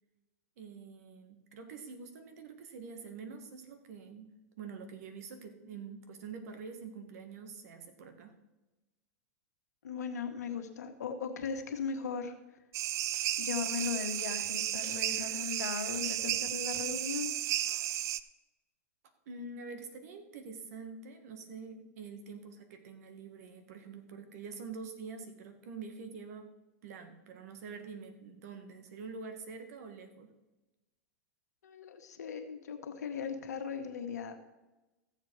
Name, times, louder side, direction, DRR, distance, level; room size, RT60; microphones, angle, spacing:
voice 1, 0.6-8.4 19.3-26.5 26.8-30.3, right 5 dB, 70° right, 7 dB, 1.9 m, -46 dB
voice 2, 9.8-12.3 13.4-17.4 31.6-34.6, left 6 dB, 85° left, 5 dB, 1.6 m, -38 dB
sound 1, 12.7-18.2, right 13 dB, 35° right, 0.5 m, -34 dB
15.0 x 7.4 x 4.8 m, 1.1 s
hypercardioid pair, 120°, 9 cm